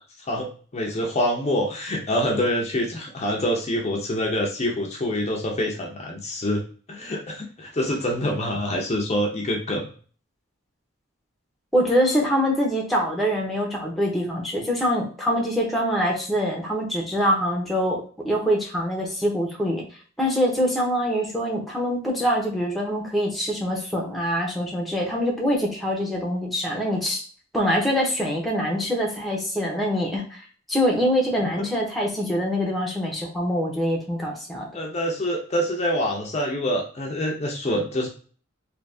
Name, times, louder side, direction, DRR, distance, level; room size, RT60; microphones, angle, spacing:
voice 1, 0.2-9.9 31.6-31.7 34.7-38.1, equal, 30° left, 0 dB, 0.6 m, -26 dB
voice 2, 11.7-19.8 20.2-27.2 27.5-30.4 30.7-34.7, equal, ahead, -2 dB, 0.8 m, -24 dB
3.4 x 2.8 x 2.6 m, 0.42 s
head